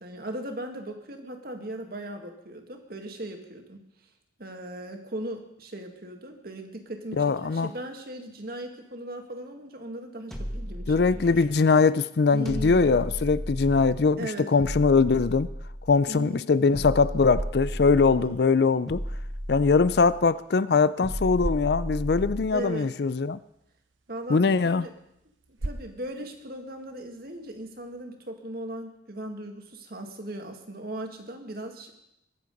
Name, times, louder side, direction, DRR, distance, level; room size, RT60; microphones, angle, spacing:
voice 1, 0.0-3.8 4.4-11.4 12.3-13.0 14.2-14.5 16.1-16.5 18.2-18.6 22.5-22.9 24.1-24.9 25.5-31.9, right 1 dB, 50° right, 1.8 m, -38 dB
voice 2, 7.2-7.7 10.9-15.5 15.9-19.0 19.5-23.4 24.3-24.9, left 4 dB, 55° left, 0.4 m, -22 dB
sound 1, 10.3-11.6 12.5-14.1 14.6-16.0 16.7-18.3 18.9-20.3 21.0-22.6, equal, ahead, 1.4 m, -34 dB
sound 2, 16.9-28.0, right 1 dB, 90° right, 1.0 m, -44 dB
22.5 x 7.7 x 5.3 m
head